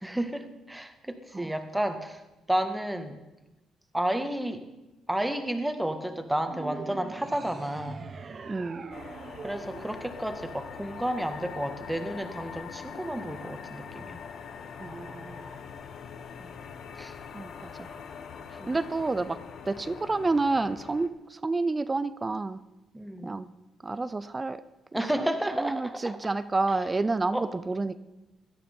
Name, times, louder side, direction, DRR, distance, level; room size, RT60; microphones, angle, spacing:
voice 1, 0.0-2.2 2.5-3.2 3.9-4.6 5.1-8.1 9.4-14.2 17.0-17.1 18.6-18.7 22.9-23.3 24.9-26.2 27.3-27.5, right 1 dB, 5° right, 1.9 m, -31 dB
sound 1, 6.4-11.0, right 5 dB, 45° right, 1.2 m, -42 dB
voice 2, 8.5-8.8 14.8-15.5 17.3-17.9 18.7-22.6 23.2-23.5 23.8-24.6 24.9-25.3 25.6-28.0, right 3 dB, 25° right, 0.6 m, -29 dB
sound 2, 8.9-21.1, left 6 dB, 65° left, 1.3 m, -43 dB
17.0 x 12.5 x 5.4 m
cardioid pair, 90°, 0 cm